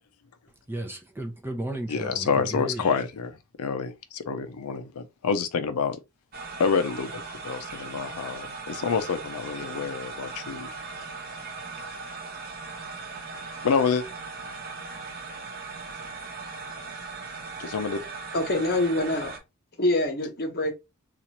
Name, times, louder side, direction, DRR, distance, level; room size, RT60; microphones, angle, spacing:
voice 1, 0.7-2.8, right 1 dB, 10° right, 0.5 m, -34 dB
voice 2, 1.9-6.0 6.6-10.7 13.6-14.0 17.6-18.0, left 5 dB, 85° left, 0.5 m, -28 dB
sound 1, 6.3-19.4, right 4 dB, 45° right, 0.9 m, -38 dB
voice 3, 18.3-19.3 19.8-20.7, left 1 dB, 45° left, 1.0 m, -25 dB
2.9 x 2.4 x 4.1 m
head